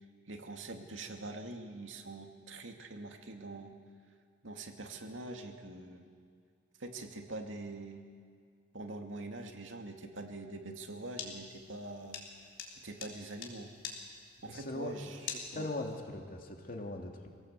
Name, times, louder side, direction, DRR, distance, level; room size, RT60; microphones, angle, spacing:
voice 1, 0.3-3.8 4.4-6.1 6.8-8.0 8.7-12.2 12.8-13.7 14.4-15.2 15.5-15.7, right 2 dB, 85° right, 3 dB, 2.3 m, -44 dB
sound 1, 11.1-16.0, left 6 dB, 90° left, 3.6 m, -44 dB
voice 2, 14.4-15.0 15.5-17.3, left 2 dB, 45° left, 2 dB, 2.7 m, -40 dB
26.0 x 17.5 x 8.2 m, 2.1 s
head